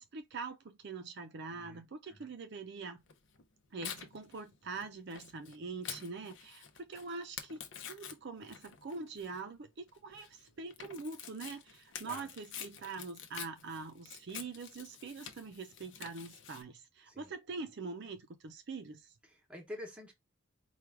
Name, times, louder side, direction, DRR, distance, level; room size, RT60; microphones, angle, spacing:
voice 1, 0.0-3.0 3.7-19.1, right 4 dB, 55° right, 0.5 m, -44 dB
voice 2, 1.5-2.3 12.0-12.3 17.1-17.3 19.3-20.1, left 1 dB, 5° right, 1.0 m, -48 dB
Tearing, 3.1-16.6, left 8 dB, 60° left, 0.7 m, -48 dB
4.6 x 2.3 x 3.4 m
head